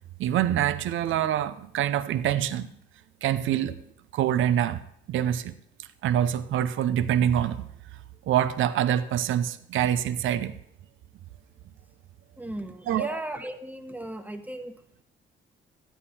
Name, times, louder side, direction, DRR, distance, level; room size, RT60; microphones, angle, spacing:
voice 1, 0.2-2.7 3.2-3.8 4.1-4.8 5.1-5.5 5.8-7.7 8.2-10.5 12.9-13.1, right 10 dB, 80° right, 12 dB, 0.7 m, -25 dB
voice 2, 12.4-14.7, right 1 dB, 10° right, 6 dB, 1.1 m, -36 dB
13.0 x 9.1 x 4.3 m, 0.69 s
cardioid pair, 90°, 20 cm